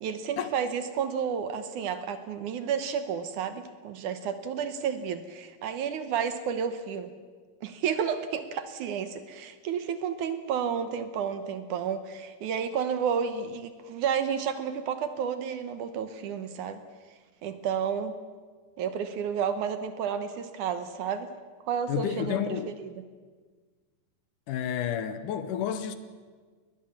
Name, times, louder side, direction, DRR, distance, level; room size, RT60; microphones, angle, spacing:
voice 1, 0.0-7.1 7.6-16.8 17.4-18.1 18.8-21.3 21.6-22.4 22.8-22.9, right 7 dB, 70° right, 2.3 m, -31 dB
voice 2, 21.9-22.7 24.5-26.0, left 9 dB, 70° left, 2.3 m, -30 dB
21.0 x 20.0 x 7.3 m
omnidirectional pair, 4.1 m